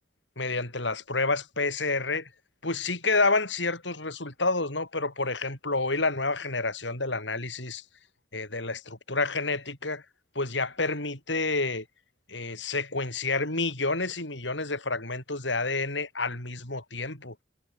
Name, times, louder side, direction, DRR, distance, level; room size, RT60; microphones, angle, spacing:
voice 1, 0.4-2.3 2.6-7.8 8.3-10.0 10.3-11.9 12.3-17.4, left 3 dB, 70° left, 7.5 m, -29 dB
head